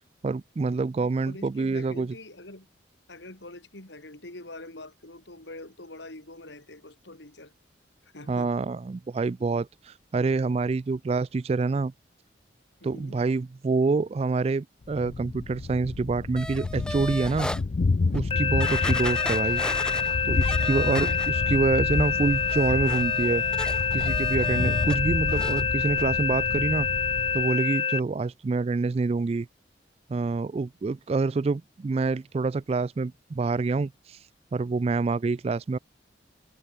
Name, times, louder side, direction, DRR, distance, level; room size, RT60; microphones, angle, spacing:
voice 1, 0.2-2.1 8.3-11.9 12.8-17.5 18.1-19.6 20.3-23.4 23.9-26.9 27.3-29.5 30.1-34.2 34.5-35.8, right 4 dB, 35° right, 0.3 m, -26 dB
voice 2, 1.0-2.7 3.1-7.5 8.1-8.5 12.8-13.2 18.3-18.7 20.7-21.2, left 2 dB, 70° left, 4.2 m, -44 dB
Thunder, 14.9-27.5, left 3 dB, 45° left, 0.4 m, -30 dB
sound 1, 16.4-17.6 18.1-18.2 18.6-21.6 21.9-25.0 25.3-25.6 26.0-26.1, left 1 dB, 5° left, 2.2 m, -37 dB
sound 2, 18.3-28.0, left 6 dB, 30° left, 0.8 m, -27 dB
head